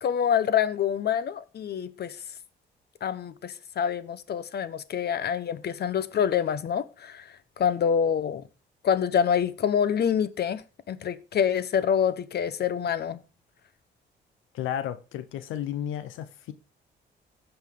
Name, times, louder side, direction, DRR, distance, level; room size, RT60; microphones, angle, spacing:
voice 1, 0.0-2.2 3.0-7.3 7.6-8.4 8.8-10.6 10.9-13.2, left 8 dB, 55° left, 0.9 m, -26 dB
voice 2, 14.5-16.5, left 10 dB, 85° left, 0.8 m, -33 dB
16.0 x 5.6 x 3.8 m
cardioid pair, 90°, 20 cm